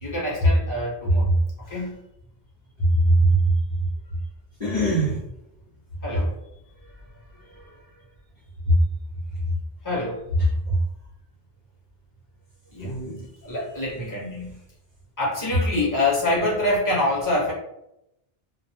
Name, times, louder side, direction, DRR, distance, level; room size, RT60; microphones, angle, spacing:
voice 1, 0.0-1.3 1.7-2.0 6.0-6.3 7.5-7.8 9.8-10.2 12.7-13.0 13.4-14.5 15.2-17.5, left 1 dB, 20° left, -4 dB, 0.8 m, -26 dB
voice 2, 2.9-3.4 4.6-5.2 8.7-8.8 10.7-10.8 12.8-13.3, right 1 dB, 50° left, -7 dB, 0.7 m, -20 dB
2.2 x 2.0 x 2.9 m, 0.83 s
omnidirectional pair, 1.0 m